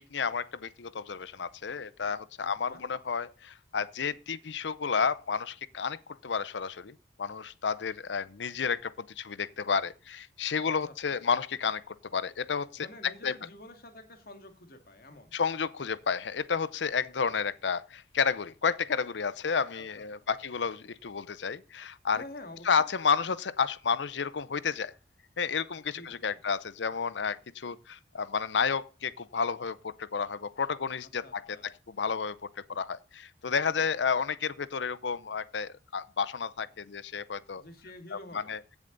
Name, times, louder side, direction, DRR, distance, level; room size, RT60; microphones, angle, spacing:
voice 1, 0.0-13.3 15.3-22.2 22.7-24.9 25.4-32.4 32.7-37.6 38.5-38.6, left 6 dB, 75° left, 0.7 m, -31 dB
voice 2, 2.4-2.8 10.6-11.2 12.8-15.3 19.7-20.5 22.1-22.9 25.9-26.4 31.0-31.7 37.6-38.6, left 2 dB, 55° left, 2.2 m, -49 dB
16.0 x 7.2 x 3.9 m
head